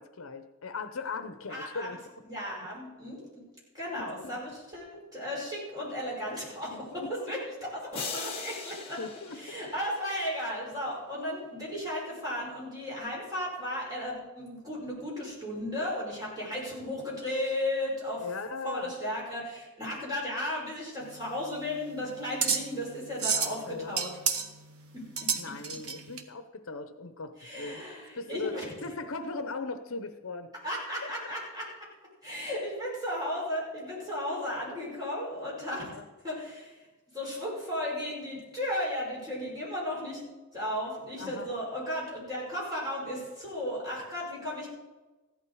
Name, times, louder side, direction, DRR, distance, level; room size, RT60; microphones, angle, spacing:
voice 1, 0.0-2.0 4.0-4.4 6.7-7.3 9.0-9.6 18.2-18.9 23.6-24.0 25.4-27.8 28.2-30.5 31.0-31.1 35.8-36.0 41.2-41.5, left 3 dB, 65° left, 10 dB, 0.8 m, -39 dB
voice 2, 1.5-1.9 2.2-3.4 3.7-9.0 9.3-18.2 18.6-24.1 24.9-25.0 27.4-28.7 30.6-31.7 32.2-35.9 36.2-36.8 37.1-40.2 40.5-44.7, left 1 dB, 15° right, -5 dB, 5.6 m, -35 dB
sound 1, 7.9-10.3, left 5 dB, 25° left, 2.0 m, -40 dB
sound 2, 21.0-26.2, right 6 dB, 80° right, 1.3 m, -32 dB
15.0 x 11.5 x 4.8 m, 1.2 s
head